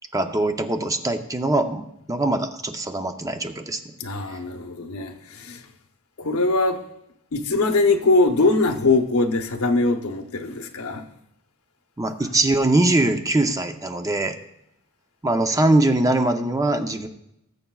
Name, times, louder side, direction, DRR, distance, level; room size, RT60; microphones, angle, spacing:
voice 1, 0.1-3.8 4.3-4.4 12.0-14.4 15.2-17.1, right 2 dB, 15° right, 0.6 m, -22 dB
voice 2, 4.0-5.6 6.2-6.8 7.3-11.0, left 3 dB, 80° left, 0.9 m, -22 dB
20.0 x 7.9 x 2.3 m
head